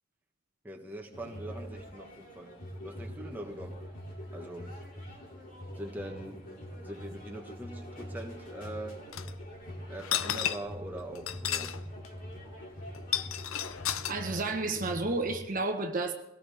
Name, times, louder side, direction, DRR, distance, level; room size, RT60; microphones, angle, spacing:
voice 1, 0.6-2.5 2.8-3.8 4.3-4.7 5.8-6.4 6.8-9.0 9.9-11.7, right 1 dB, 10° right, 1.5 m, -42 dB
sound 1, 1.1-15.4, equal, 45° left, 3.0 m, -44 dB
sound 2, 9.1-9.3 10.0-10.8 11.2-11.8 12.0-12.1 12.9-14.1, left 11 dB, 80° left, 0.6 m, -32 dB
voice 2, 14.1-16.1, right 3 dB, 40° right, 1.3 m, -31 dB
22.0 x 18.0 x 3.6 m
head